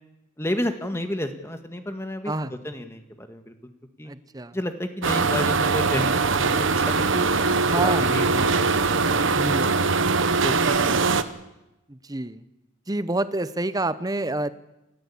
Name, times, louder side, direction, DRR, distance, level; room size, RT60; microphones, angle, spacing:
voice 1, 0.4-2.3 2.6-3.5 4.0-4.1 4.5-9.2 9.6-9.7 10.4-11.2, left 1 dB, 15° left, 7 dB, 1.7 m, -31 dB
voice 2, 4.1-4.6 7.7-8.4 9.3-9.7 11.9-12.4 12.9-14.5, right 2 dB, 20° right, 14 dB, 0.8 m, -28 dB
sound 1, 5.0-11.2, right 4 dB, 70° right, 1.1 m, -22 dB
29.0 x 14.0 x 8.6 m, 0.95 s
head